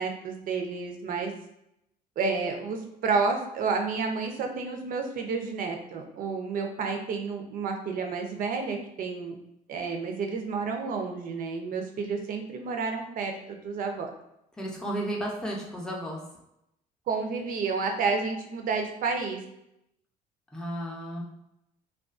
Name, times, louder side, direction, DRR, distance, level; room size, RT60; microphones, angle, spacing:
voice 1, 0.0-1.3 2.2-9.3 9.7-14.1 17.1-19.4, right 4 dB, 55° right, 4 dB, 0.5 m, -30 dB
voice 2, 14.6-16.2 20.5-21.2, right 1 dB, 5° left, -3 dB, 0.5 m, -33 dB
2.4 x 2.2 x 2.3 m, 0.82 s
cardioid pair, 110°, 17 cm